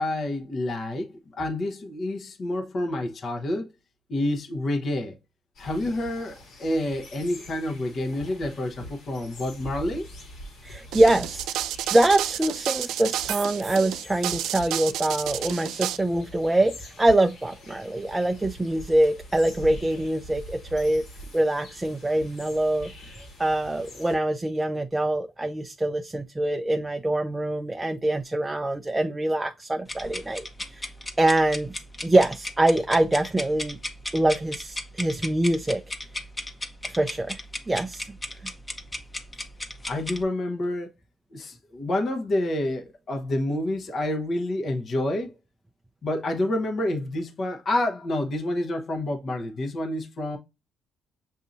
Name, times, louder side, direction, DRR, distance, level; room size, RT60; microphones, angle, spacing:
voice 1, 0.0-3.7 4.1-5.2 5.6-10.1 39.9-40.9 41.3-45.3 46.0-50.4, left 1 dB, 50° left, 0.9 m, -28 dB
sound 1, 5.5-24.2, equal, 80° left, 1.6 m, -44 dB
voice 2, 10.6-21.1 21.3-22.9 23.4-30.8 31.2-31.7 32.0-33.8 34.1-35.8 36.8-38.1, right 1 dB, 15° right, 0.4 m, -24 dB
sound 2, 10.9-16.0, right 12 dB, 90° right, 0.3 m, -30 dB
sound 3, 29.9-40.2, left 1 dB, 20° left, 0.9 m, -35 dB
7.1 x 2.7 x 2.5 m
cardioid pair, 90°, 0 cm